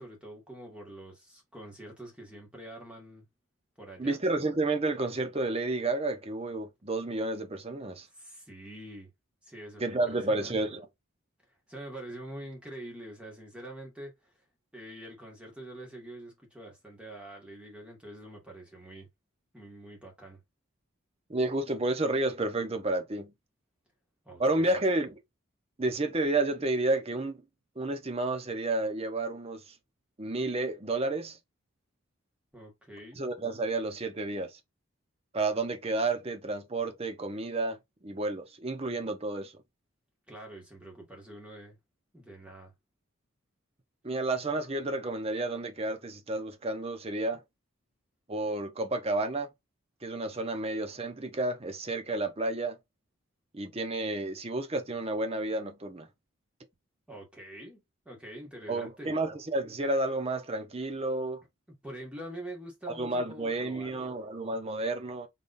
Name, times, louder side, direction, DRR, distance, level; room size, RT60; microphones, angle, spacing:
voice 1, 0.0-3.2 3.8-4.2 8.1-9.1 9.4-10.6 11.7-14.3 14.7-19.1 19.5-20.4 24.2-24.8 32.5-33.2 40.3-41.8 42.1-42.7 57.1-59.1 61.8-64.1, right 1 dB, 5° right, 1.7 m, -45 dB
voice 2, 4.0-8.1 9.8-10.9 21.3-23.3 24.4-25.2 25.8-27.4 27.8-29.7 30.2-31.4 33.2-34.6 35.3-37.8 38.0-39.5 44.0-47.4 48.3-49.5 50.0-52.8 53.5-56.1 58.7-61.4 62.9-65.3, right 2 dB, 30° right, 0.7 m, -31 dB
4.0 x 3.5 x 2.6 m
head